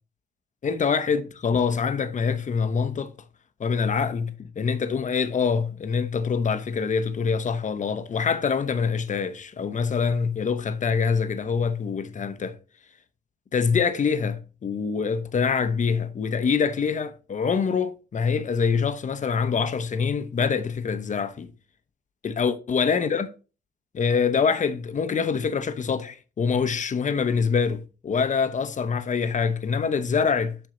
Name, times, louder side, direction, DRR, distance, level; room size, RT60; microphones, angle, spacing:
voice 1, 0.6-3.1 3.6-12.6 13.5-21.5 22.2-23.3 23.9-30.6, left 6 dB, 40° left, 0.8 m, -25 dB
7.6 x 5.6 x 3.8 m
cardioid pair, 90°, 20 cm